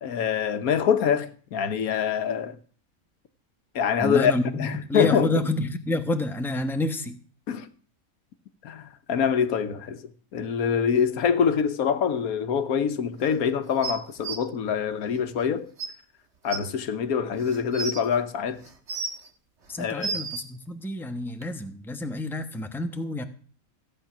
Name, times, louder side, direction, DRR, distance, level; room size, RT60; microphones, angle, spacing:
voice 1, 0.0-2.6 3.7-5.5 7.5-7.7 8.6-15.7 16.4-18.6 19.8-20.2, left 7 dB, 85° left, 1.4 m, -25 dB
voice 2, 4.0-7.2 19.7-23.2, left 2 dB, ahead, 1.0 m, -29 dB
sound 1, 13.8-14.4 15.4-15.5 15.8-15.9 16.5-16.6 17.4-18.0 18.6-19.3 19.8-20.4 21.4-21.5, right 4 dB, 55° right, 1.6 m, -32 dB
15.0 x 8.8 x 5.9 m
omnidirectional pair, 1.5 m